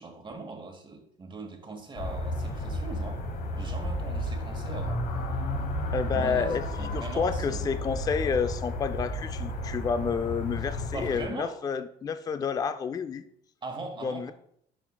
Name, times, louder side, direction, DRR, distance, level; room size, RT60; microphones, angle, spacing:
voice 1, 0.0-3.3 3.6-5.0 6.1-7.7 10.9-11.6 13.6-14.3, right 3 dB, 30° right, 1.3 m, -40 dB
sound 1, 2.0-11.3, left 1 dB, 60° left, 1.2 m, -32 dB
voice 2, 5.9-13.3 14.0-14.3, left 6 dB, 20° left, 0.3 m, -30 dB
11.5 x 4.4 x 2.2 m
cardioid pair, 110°, 17 cm